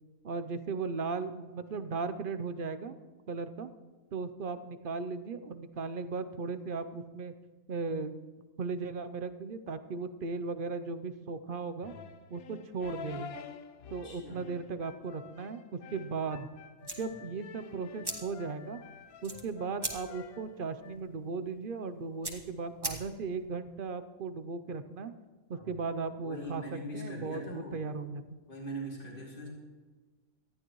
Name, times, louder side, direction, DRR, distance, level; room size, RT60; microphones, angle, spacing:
voice 1, 0.2-3.0 3.3-3.7 4.1-7.3 7.7-8.2 8.6-11.9 12.3-13.4 13.9-15.6 15.9-16.5 17.0-18.8 19.2-25.1 25.5-26.6 26.9-28.2, right 4 dB, 50° right, 11 dB, 0.7 m, -37 dB
sound 1, 11.8-21.0, left 6 dB, 85° left, 1.2 m, -49 dB
voice 2, 14.0-14.4 25.5-25.7 26.2-27.9 28.5-29.5, right 1 dB, 40° left, -3 dB, 3.0 m, -41 dB
sound 2, 16.8-23.4, right 2 dB, 15° right, 1.4 m, -42 dB
19.0 x 13.5 x 3.1 m, 1.4 s
omnidirectional pair, 1.4 m